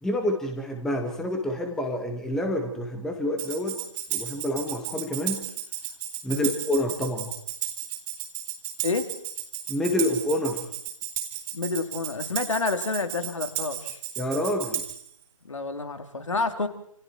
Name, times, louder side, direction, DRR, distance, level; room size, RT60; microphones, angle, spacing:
voice 1, 0.0-3.8 4.1-5.4 6.2-7.3 9.7-10.6 14.2-14.8, left 1 dB, 5° left, 4 dB, 1.7 m, -28 dB
Tambourine, 3.4-15.1, right 12 dB, 15° right, 3.9 m, -34 dB
voice 2, 11.5-14.0 15.4-16.7, left 3 dB, 60° left, 8 dB, 3.8 m, -29 dB
29.0 x 28.5 x 4.6 m, 0.69 s
figure-of-eight pair, 150°, 19 cm